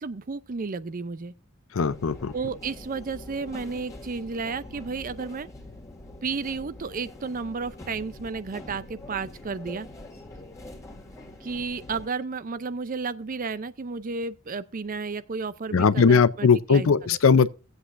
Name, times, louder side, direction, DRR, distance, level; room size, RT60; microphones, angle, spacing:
voice 1, 0.0-1.3 2.3-5.5 6.2-9.9 11.4-17.2, right 4 dB, 40° right, 0.5 m, -32 dB
voice 2, 1.7-2.3 15.7-17.5, left 5 dB, 70° left, 0.5 m, -19 dB
sound 1, 1.9-12.1, left 1 dB, 15° left, 1.8 m, -44 dB
18.0 x 7.9 x 2.5 m
head